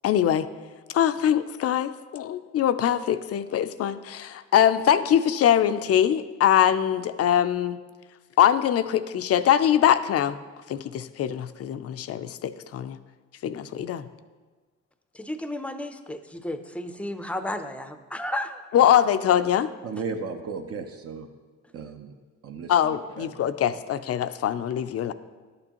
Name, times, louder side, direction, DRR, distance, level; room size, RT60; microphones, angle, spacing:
voice 1, 0.0-0.5 0.9-7.8 8.4-10.4 10.7-13.0 13.4-14.1 18.7-19.7 22.7-25.1, left 10 dB, 55° left, 12 dB, 0.4 m, -23 dB
voice 2, 15.1-18.6, left 1 dB, 5° left, 9 dB, 0.5 m, -33 dB
voice 3, 19.8-21.3 21.7-22.1 22.4-22.7 23.2-23.3, right 5 dB, 50° right, 5 dB, 0.7 m, -34 dB
11.5 x 6.8 x 2.9 m, 1.4 s
cardioid pair, 90°, 30 cm